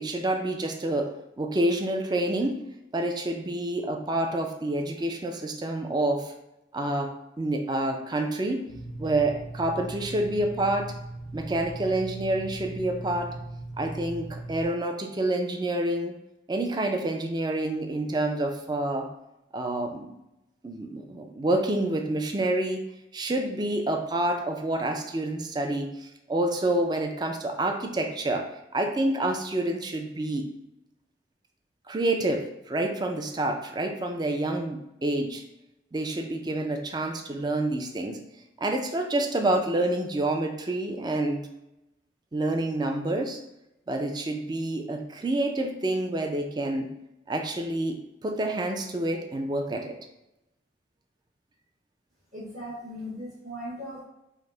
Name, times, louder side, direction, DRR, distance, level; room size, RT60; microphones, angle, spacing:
voice 1, 0.0-2.6 2.9-6.3 6.7-8.7 9.0-10.9 11.3-13.3 13.8-16.2 16.5-19.1 19.5-20.2 20.6-22.9 23.1-30.5 31.9-35.4 35.9-38.2 38.6-41.5 42.3-43.4 43.9-46.9 47.3-50.0, right 1 dB, 25° right, 4 dB, 0.4 m, -28 dB
sound 1, 8.7-14.6, right 2 dB, 80° right, 0.8 m, -39 dB
voice 2, 52.3-54.0, equal, 45° right, -7 dB, 1.1 m, -38 dB
5.1 x 2.1 x 3.8 m, 0.88 s
head